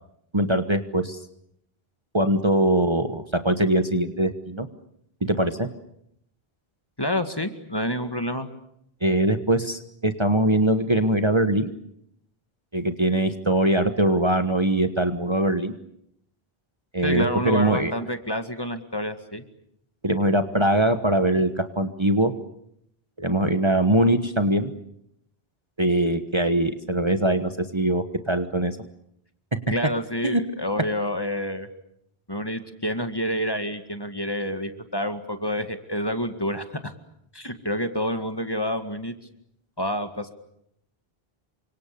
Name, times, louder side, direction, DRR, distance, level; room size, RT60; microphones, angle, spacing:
voice 1, 0.3-1.2 2.1-4.7 5.2-5.7 9.0-11.7 12.7-15.7 16.9-17.9 20.0-22.3 23.2-24.7 25.8-28.8 30.2-30.4, right 1 dB, 30° right, 9 dB, 1.3 m, -22 dB
voice 2, 7.0-8.5 17.0-19.4 29.7-31.7 32.3-36.9 37.3-39.1 39.8-40.3, equal, 25° left, 8 dB, 2.1 m, -28 dB
29.5 x 25.5 x 6.9 m, 0.74 s
omnidirectional pair, 1.0 m